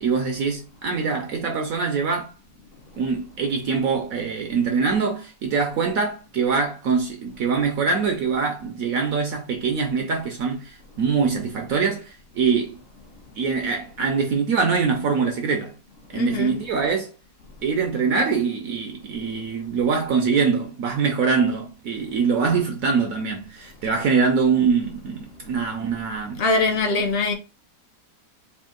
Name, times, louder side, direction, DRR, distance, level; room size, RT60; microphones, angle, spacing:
voice 1, 0.0-2.3 3.0-12.8 13.4-15.7 16.1-17.1 17.6-26.4, right 5 dB, 65° right, 0.9 m, -23 dB
voice 2, 16.1-16.6 26.4-27.3, left 3 dB, 65° left, 0.6 m, -22 dB
3.5 x 2.7 x 3.7 m
omnidirectional pair, 1.9 m